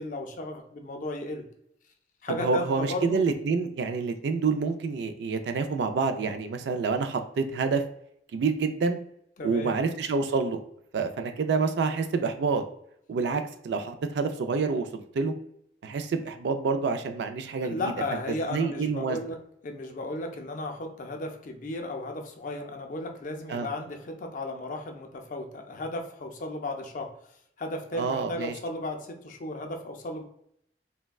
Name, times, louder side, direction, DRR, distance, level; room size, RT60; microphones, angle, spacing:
voice 1, 0.0-1.5 2.2-3.2 9.4-9.8 17.6-19.4 19.6-27.1 27.6-30.2, left 2 dB, 45° left, 3 dB, 0.4 m, -35 dB
voice 2, 2.3-7.8 8.3-9.0 9.4-10.6 10.9-12.6 13.1-15.3 15.8-17.8 18.5-19.2 23.5-23.7 27.9-28.5, right 4 dB, 75° right, 7 dB, 0.3 m, -27 dB
3.3 x 2.1 x 2.3 m, 0.72 s
head